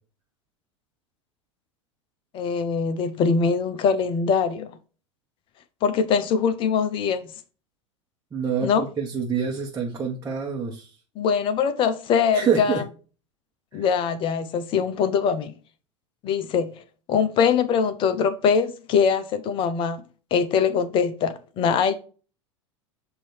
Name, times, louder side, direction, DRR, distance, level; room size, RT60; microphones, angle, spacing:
voice 1, 2.3-4.7 5.8-7.2 8.6-8.9 11.2-12.9 13.7-15.6 16.2-16.8 17.1-20.0 20.3-21.9, left 6 dB, 35° left, 0.6 m, -22 dB
voice 2, 8.3-10.9 12.3-12.8, right 6 dB, 20° right, 1.2 m, -26 dB
7.7 x 2.8 x 4.4 m
figure-of-eight pair, 85°, 16 cm